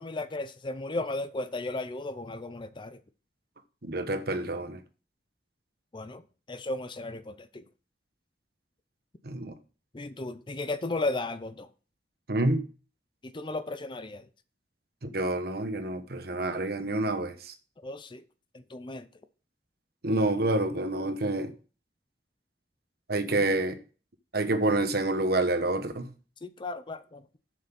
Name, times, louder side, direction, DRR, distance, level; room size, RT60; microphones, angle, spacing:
voice 1, 0.0-3.0 5.9-6.2 6.5-7.6 9.9-11.7 13.2-14.3 17.8-18.2 18.5-19.1 23.3-23.5 26.4-27.3, left 2 dB, 30° left, 0.6 m, -35 dB
voice 2, 3.8-4.8 9.2-9.5 12.3-12.6 15.0-17.5 20.0-21.5 23.1-23.8 24.3-26.1, right 2 dB, 60° right, 1.2 m, -28 dB
7.6 x 6.5 x 5.3 m
head